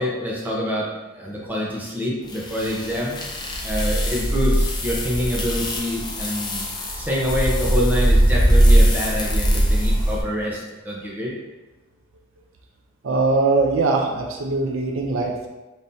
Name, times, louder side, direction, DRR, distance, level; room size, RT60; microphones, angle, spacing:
voice 1, 0.0-3.1 3.6-6.7 7.0-11.3, equal, 10° right, -5 dB, 0.8 m, -26 dB
sound 1, 2.3-10.2, equal, 20° left, 0.5 m, -20 dB
voice 2, 13.0-15.5, right 3 dB, 80° right, 1 dB, 0.6 m, -21 dB
5.4 x 3.0 x 2.7 m, 1.1 s
head